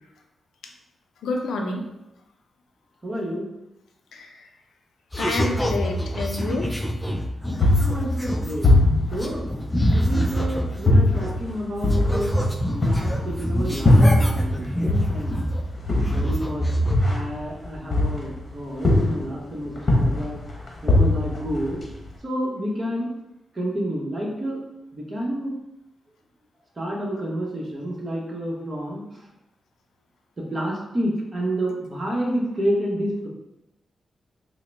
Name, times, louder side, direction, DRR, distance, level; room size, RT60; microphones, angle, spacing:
voice 1, 1.2-1.9 4.1-4.5 5.2-6.7, left 3 dB, 90° left, 2 dB, 0.4 m, -28 dB
voice 2, 3.0-3.4 7.8-8.7 9.1-9.5 9.9-12.3 12.8-15.3 16.1-16.7 17.1-20.4 20.8-21.8 22.2-23.1 23.5-24.6 24.9-25.5 26.8-29.0 30.4-33.3, equal, 35° right, -2 dB, 1.0 m, -29 dB
sound 1, 5.1-11.6 11.8-15.7 16.0-16.9, equal, 10° left, 0.4 m, -25 dB
Walking Footsteps on Carpet, 7.6-10.4 10.9-14.6 14.9-18.5 18.8-19.4 19.8-22.1, left 1 dB, 40° left, 0.9 m, -21 dB
3.7 x 2.1 x 3.3 m, 0.89 s
cardioid pair, 85°, 0 cm